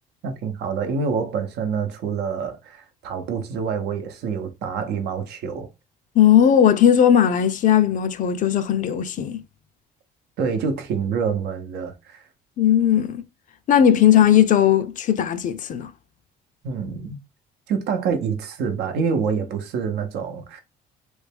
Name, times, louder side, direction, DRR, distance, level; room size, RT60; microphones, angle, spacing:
voice 1, 0.2-5.7 10.4-12.2 16.6-17.2 17.7-20.6, right 6 dB, 80° right, 0.8 m, -26 dB
voice 2, 6.2-9.4 12.6-13.2 13.7-15.9, left 9 dB, 50° left, 0.5 m, -17 dB
3.3 x 2.2 x 3.3 m
cardioid pair, 110°, 17 cm